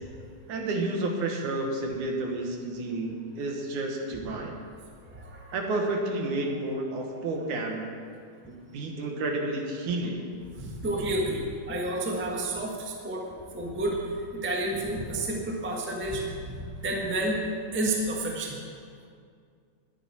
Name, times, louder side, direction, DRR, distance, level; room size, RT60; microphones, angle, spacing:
voice 1, 0.5-4.5 5.5-7.8 8.5-10.2, right 2 dB, 70° right, 1 dB, 2.9 m, -30 dB
voice 2, 5.1-5.5 10.6-13.2 13.5-14.0 14.3-17.4 17.7-18.6, right 1 dB, 15° right, -1 dB, 0.3 m, -30 dB
21.0 x 9.3 x 4.5 m, 2.2 s
omnidirectional pair, 3.7 m